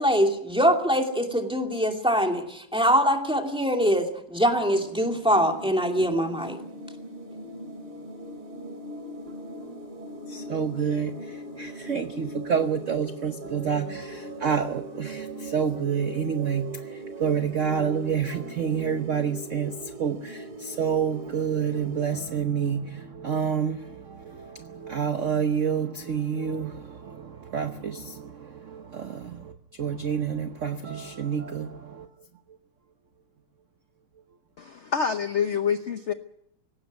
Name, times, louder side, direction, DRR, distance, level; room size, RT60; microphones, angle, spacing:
voice 1, 0.0-6.6, equal, ahead, 2.3 m, -23 dB
sound 1, 4.5-22.2, right 2 dB, 80° right, 3.5 m, -40 dB
voice 2, 10.3-16.7 17.2-19.7 20.0-29.5 29.8-32.1, right 7 dB, 50° right, 0.9 m, -28 dB
voice 3, 34.6-36.1, left 7 dB, 55° left, 0.8 m, -27 dB
18.5 x 16.0 x 9.5 m
omnidirectional pair, 2.3 m